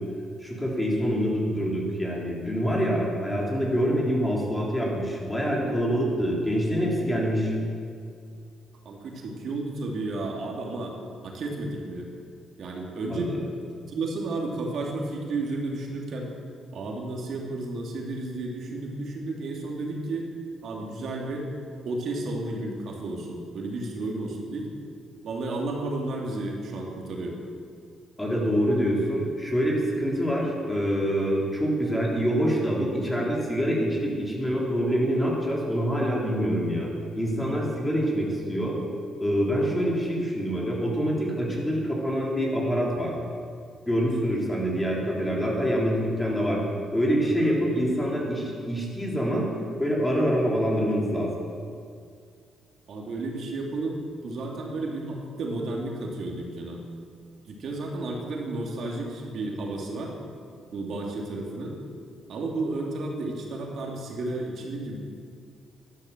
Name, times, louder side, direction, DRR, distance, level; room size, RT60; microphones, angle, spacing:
voice 1, 0.4-7.5 13.1-13.3 28.2-38.8 39.2-43.1 43.9-46.6 46.9-49.5 49.8-51.3, equal, 10° left, -3 dB, 3.9 m, -25 dB
voice 2, 8.8-10.9 11.2-12.0 12.6-13.4 13.9-16.3 16.7-20.3 20.6-21.5 21.8-24.7 25.2-27.4 47.4-47.9 52.9-56.8 57.5-60.1 60.7-61.8 62.3-65.0, right 2 dB, 65° right, -1 dB, 2.8 m, -32 dB
12.5 x 11.5 x 7.4 m, 2.2 s
cardioid pair, 90°, 0 cm